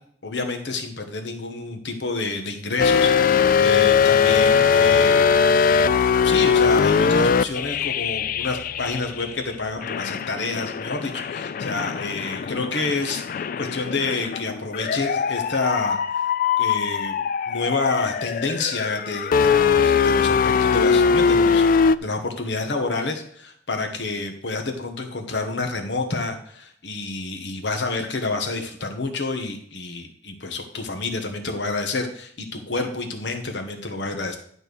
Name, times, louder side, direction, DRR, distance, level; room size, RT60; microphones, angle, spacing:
voice 1, 0.2-5.3 6.2-16.2 16.6-17.2 17.5-21.6 22.0-34.4, left 3 dB, 70° left, 4 dB, 1.2 m, -28 dB
sound 1, 2.8-9.4 9.8-22.0, left 6 dB, 50° left, 0.3 m, -20 dB
11.0 x 4.4 x 6.8 m, 0.63 s
head